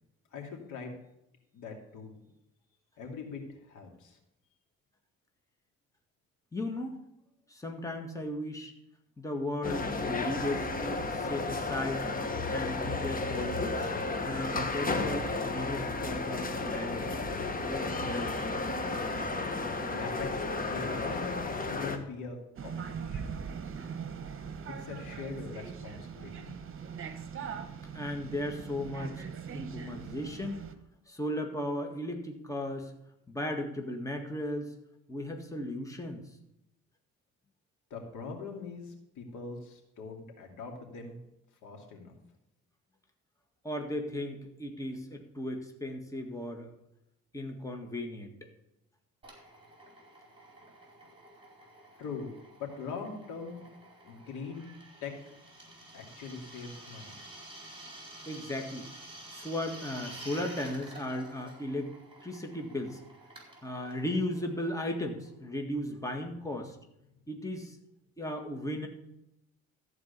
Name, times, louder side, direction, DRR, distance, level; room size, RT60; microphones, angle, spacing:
voice 1, 0.3-0.9 1.5-2.1 3.0-4.2 19.9-23.4 24.7-26.5 37.9-41.2 41.6-42.1 52.0-52.3 52.6-53.6 54.0-54.7 55.0-55.1 55.9-57.2, left 5 dB, 80° left, 2 dB, 2.7 m, -42 dB
voice 2, 6.5-7.0 7.5-8.7 9.2-12.1 12.5-13.9 14.2-17.1 17.7-18.3 27.9-29.3 29.5-30.6 31.1-32.9 33.3-34.7 35.1-36.2 43.6-46.7 47.3-48.5 58.3-58.9 59.3-61.9 62.2-63.0 63.6-66.8 67.3-67.8 68.2-68.9, left 1 dB, 10° left, 3 dB, 1.9 m, -36 dB
sound 1, 9.6-22.0, left 3 dB, 30° left, 1.5 m, -33 dB
sound 2, 22.6-30.8, right 7 dB, 45° right, 1.2 m, -41 dB
Drill, 49.2-65.6, right 1 dB, 15° right, 4.2 m, -50 dB
14.0 x 4.7 x 8.2 m, 0.83 s
cardioid pair, 90°, 30 cm